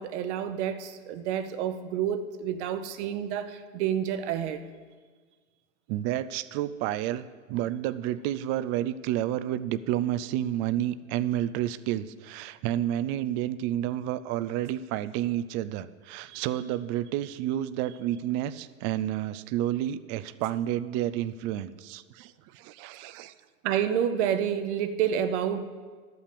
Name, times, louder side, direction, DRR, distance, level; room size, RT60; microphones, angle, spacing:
voice 1, 0.0-4.6 16.3-16.4 23.6-25.7, right 9 dB, 55° right, 10 dB, 1.0 m, -29 dB
voice 2, 5.9-23.3, right 12 dB, 35° right, 13 dB, 0.4 m, -30 dB
12.5 x 5.9 x 6.8 m, 1.5 s
hypercardioid pair, 105°, 41 cm